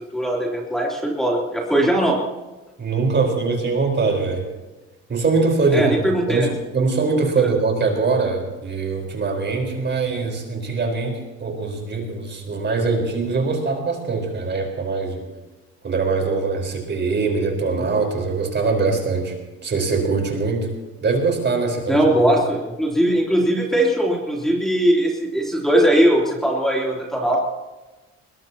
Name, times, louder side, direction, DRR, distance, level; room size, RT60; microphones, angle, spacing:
voice 1, 0.1-2.2 5.7-6.5 17.8-17.9 21.9-27.4, right 1 dB, ahead, -3 dB, 3.3 m, -20 dB
voice 2, 2.8-4.5 5.1-5.9 6.3-15.2 15.8-19.3 19.6-20.7 21.0-22.0, right 4 dB, 35° right, 2 dB, 4.5 m, -22 dB
21.5 x 20.5 x 3.0 m, 1.1 s
cardioid pair, 100°, 30 cm